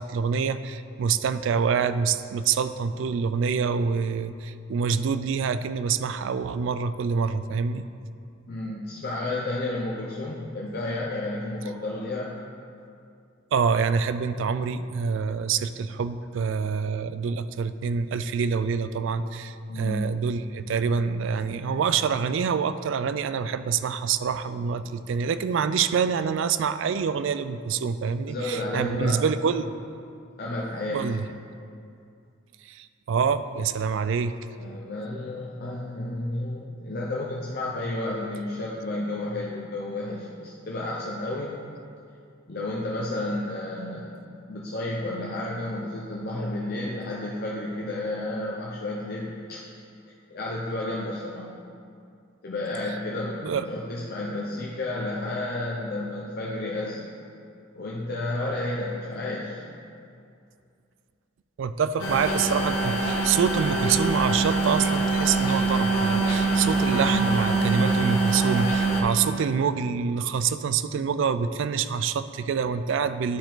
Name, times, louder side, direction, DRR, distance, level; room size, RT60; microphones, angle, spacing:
voice 1, 0.0-7.9 13.5-29.7 30.9-31.3 32.7-34.3 53.4-53.7 61.6-73.4, right 6 dB, 65° right, 13 dB, 0.3 m, -26 dB
voice 2, 8.5-12.4 19.7-20.0 28.3-29.2 30.4-31.2 34.6-41.5 42.5-44.2 44.5-49.6 50.3-51.6 52.4-57.1 57.8-59.6, left 2 dB, 50° left, -4 dB, 0.7 m, -31 dB
sound 1, 62.0-69.0, right 3 dB, 80° left, 1.5 m, -24 dB
11.5 x 4.5 x 3.9 m, 2.4 s
head